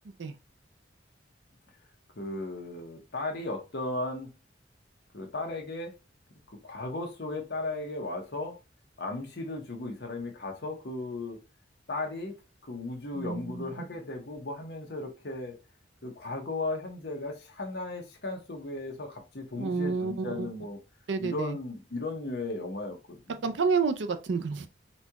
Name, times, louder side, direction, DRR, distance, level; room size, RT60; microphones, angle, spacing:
voice 1, 2.2-4.3 5.1-5.9 6.5-8.6 9.0-11.4 11.9-12.4 12.7-15.5 16.0-20.8 21.2-23.6, left 2 dB, 60° left, 0.9 m, -36 dB
voice 2, 13.1-13.7 19.6-20.5 21.1-21.6 23.4-24.7, right 4 dB, 75° right, 0.5 m, -29 dB
4.2 x 2.3 x 2.8 m
head